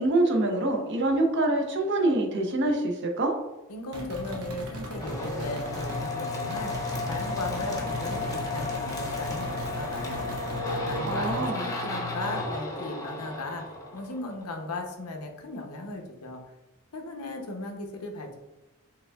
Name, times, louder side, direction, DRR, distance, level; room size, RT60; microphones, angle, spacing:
voice 1, 0.0-3.3 11.0-11.6, right 2 dB, 55° right, 2 dB, 0.7 m, -25 dB
voice 2, 3.7-10.4 10.9-13.6 13.9-16.4 16.9-18.4, left 2 dB, 85° left, 3 dB, 0.7 m, -37 dB
sound 1, 3.9-6.1 6.5-11.5, equal, 90° right, 0.9 m, -38 dB
Paper Shredder, 4.9-14.5, left 2 dB, 15° left, 0.7 m, -33 dB
4.9 x 3.5 x 2.3 m, 1.0 s
head